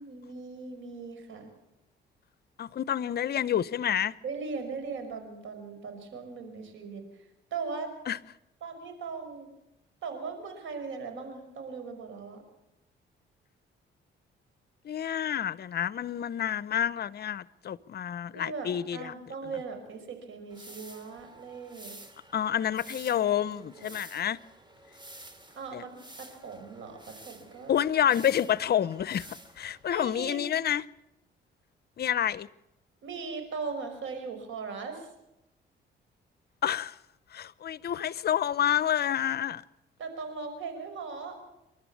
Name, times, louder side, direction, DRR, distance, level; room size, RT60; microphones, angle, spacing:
voice 1, 0.0-1.5 4.2-7.0 7.5-7.9 8.6-9.5 10.0-12.4 18.3-22.0 23.1-23.9 25.6-27.8 29.9-30.4 33.0-35.1 40.0-41.4, right 4 dB, 75° right, 5.5 m, -39 dB
voice 2, 2.6-4.1 8.1-8.2 14.8-19.1 22.3-24.4 25.7-25.8 27.7-30.9 32.0-32.5 36.6-37.0 37.3-39.6, left 10 dB, 55° left, 0.7 m, -28 dB
sound 1, 20.5-29.8, right 1 dB, 25° right, 2.7 m, -50 dB
28.0 x 12.0 x 8.5 m
cardioid pair, 90°, 20 cm